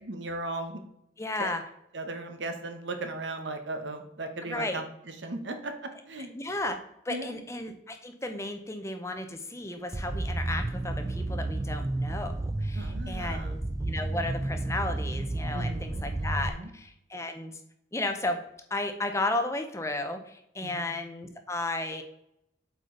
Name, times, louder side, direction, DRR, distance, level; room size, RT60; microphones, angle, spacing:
voice 1, 0.0-0.8 1.4-1.5 1.9-5.7 6.0-6.3 7.1-7.4 12.7-13.5 15.5-16.7 20.6-20.9, right 2 dB, 75° right, 6 dB, 1.1 m, -37 dB
voice 2, 1.2-1.6 4.4-4.8 6.3-6.8 7.0-17.6 17.9-18.4 18.7-22.0, left 2 dB, 15° left, 7 dB, 0.7 m, -34 dB
sound 1, 9.9-16.5, right 2 dB, 20° right, 0.3 m, -32 dB
7.8 x 5.0 x 3.9 m, 0.77 s
head